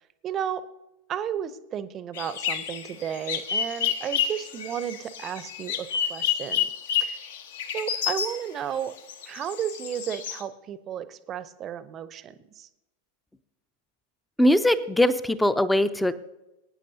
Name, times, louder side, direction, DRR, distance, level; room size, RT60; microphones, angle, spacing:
voice 1, 0.2-0.6 1.1-6.7 7.0-7.1 7.7-9.0 9.3-12.7, right 9 dB, 30° right, 14 dB, 0.7 m, -33 dB
sound 1, 2.1-8.4 9.0-10.4, left 8 dB, 60° left, 1.0 m, -30 dB
voice 2, 14.4-16.1, left 1 dB, 5° left, 14 dB, 0.6 m, -21 dB
22.0 x 9.7 x 2.8 m, 0.97 s
figure-of-eight pair, 90°, 0 cm